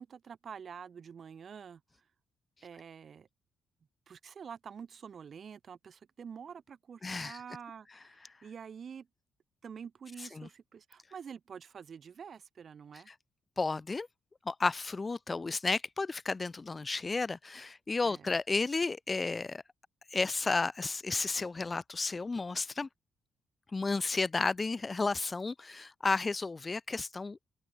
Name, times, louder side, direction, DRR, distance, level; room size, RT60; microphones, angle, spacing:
voice 1, 0.0-1.8 2.6-3.3 4.1-9.1 9.6-13.1 18.0-18.3, right 7 dB, 50° right, 1.8 m, -47 dB
voice 2, 7.0-7.4 10.4-10.5 13.1-13.2 13.6-14.1 14.5-19.6 20.1-22.9 23.7-27.4, left 3 dB, 25° left, 0.5 m, -32 dB
open air
cardioid pair, 90°, 0 cm